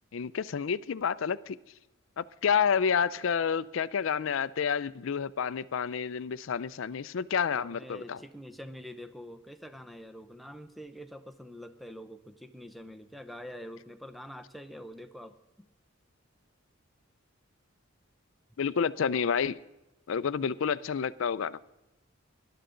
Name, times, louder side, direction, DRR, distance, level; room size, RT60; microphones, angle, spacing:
voice 1, 0.1-1.6 2.2-8.2 18.6-19.6 20.1-21.6, left 6 dB, 70° left, 17 dB, 0.4 m, -29 dB
voice 2, 7.5-15.7, equal, ahead, 6 dB, 0.7 m, -45 dB
19.0 x 11.5 x 3.8 m, 1.0 s
head